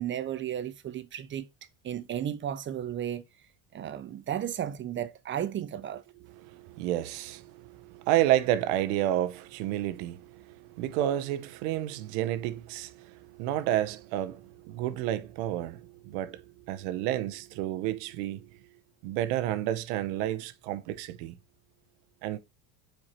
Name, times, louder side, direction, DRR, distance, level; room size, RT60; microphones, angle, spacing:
voice 1, 0.0-1.5 1.8-3.2 3.7-6.0, right 10 dB, 25° right, 0.5 m, -34 dB
voice 2, 6.3-18.5 19.0-21.4 22.2-22.4, right 13 dB, 75° right, 0.8 m, -30 dB
4.8 x 4.6 x 4.2 m
supercardioid pair, 125°, 45 cm